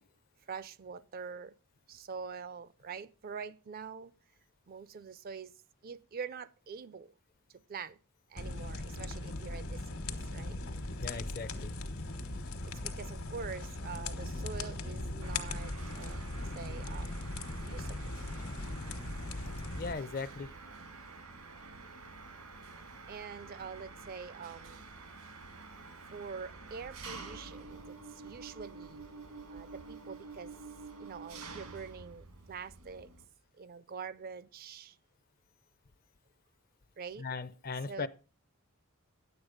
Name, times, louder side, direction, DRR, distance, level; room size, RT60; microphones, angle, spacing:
voice 1, 0.5-1.5 1.9-4.1 4.7-5.5 5.8-7.1 7.7-8.0 8.3-10.6 12.6-16.3 16.6-17.1 17.6-18.1 23.1-24.8 26.1-28.0 28.2-29.1 29.5-30.5 31.0-33.1 33.6-35.0 37.0-37.3 37.9-38.1, right 5 dB, 40° right, 0.4 m, -45 dB
sound 1, 8.4-19.9, left 2 dB, 70° left, 1.3 m, -39 dB
voice 2, 11.0-11.8 19.8-20.5 37.2-38.1, left 4 dB, 40° left, 0.5 m, -38 dB
Mechanisms, 15.2-33.3, right 4 dB, 85° right, 1.8 m, -49 dB
10.0 x 8.1 x 5.0 m
head